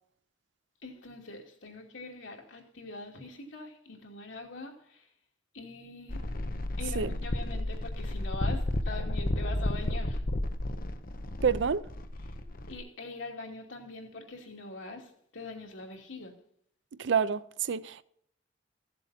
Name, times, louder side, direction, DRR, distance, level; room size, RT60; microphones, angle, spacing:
voice 1, 0.8-5.1 5.5-6.2 6.8-10.2 12.7-16.3, left 3 dB, 85° left, 2.7 m, -43 dB
sound 1, 6.1-12.8, left 1 dB, 50° left, 0.8 m, -32 dB
voice 2, 11.4-11.9 17.0-18.1, right 6 dB, 70° right, 0.5 m, -28 dB
15.5 x 7.6 x 4.3 m
head